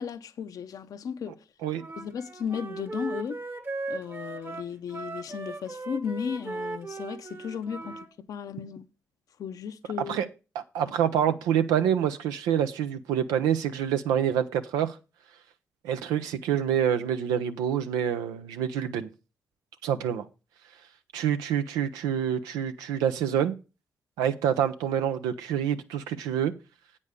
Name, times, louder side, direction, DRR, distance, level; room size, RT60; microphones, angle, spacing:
voice 1, 0.0-1.4 2.0-3.4 3.9-8.9 9.4-10.2, left 7 dB, 70° left, 0.7 m, -35 dB
Wind instrument woodwind instrument, 1.8-8.1, right 3 dB, 35° right, 1.2 m, -38 dB
voice 2, 10.5-15.0 15.8-19.1 19.8-20.2 21.1-23.5 24.2-26.5, right 9 dB, 90° right, 0.6 m, -27 dB
8.3 x 5.3 x 6.6 m
supercardioid pair, 40°, 6 cm